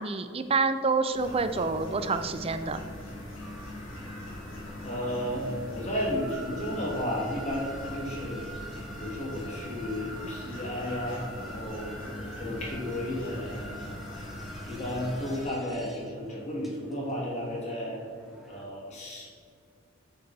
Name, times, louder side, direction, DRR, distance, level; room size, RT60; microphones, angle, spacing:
voice 1, 0.0-2.8, right 4 dB, 30° right, 10 dB, 0.5 m, -27 dB
sound 1, 1.1-15.4, left 1 dB, 75° left, 2.3 m, -41 dB
sound 2, 3.4-18.6, equal, ahead, 1.1 m, -46 dB
voice 2, 4.8-8.5 9.0-11.9 12.4-13.7 14.6-18.0 18.5-19.3, left 1 dB, 35° left, -3 dB, 2.3 m, -33 dB
8.4 x 6.9 x 4.1 m, 2.2 s
head